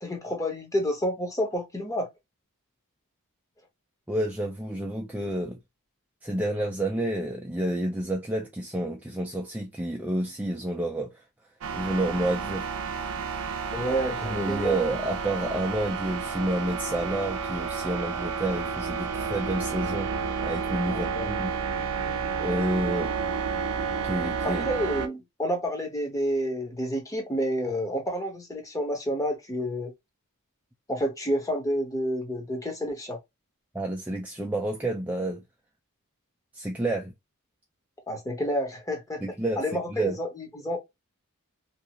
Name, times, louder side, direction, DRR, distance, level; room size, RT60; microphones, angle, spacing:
voice 1, 0.0-2.1 13.7-14.8 20.9-21.3 24.4-29.9 30.9-33.2 38.1-39.2 39.6-40.8, equal, 15° left, 0.8 m, -29 dB
voice 2, 4.1-5.6 6.2-11.2 11.7-12.7 14.2-20.1 20.4-21.5 22.4-23.1 24.0-24.7 33.7-35.4 36.5-37.1 39.2-39.6 39.9-40.2, right 1 dB, 5° right, 0.3 m, -29 dB
sound 1, 11.6-25.1, right 5 dB, 70° right, 0.5 m, -31 dB
2.8 x 2.4 x 2.8 m
head